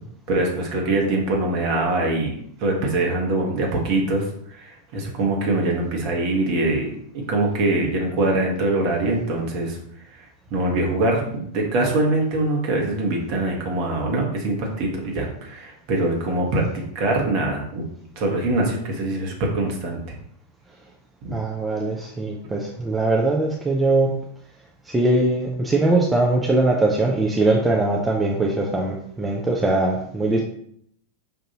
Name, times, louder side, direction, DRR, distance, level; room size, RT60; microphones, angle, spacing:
voice 1, 0.3-2.3 2.6-9.8 10.5-17.8 18.2-20.0 21.2-21.3, right 2 dB, 45° right, 0 dB, 1.1 m, -23 dB
voice 2, 21.3-24.2 24.9-30.4, right 2 dB, 10° right, -1 dB, 0.5 m, -21 dB
5.3 x 2.6 x 2.8 m, 0.69 s
figure-of-eight pair, 90°, 0 cm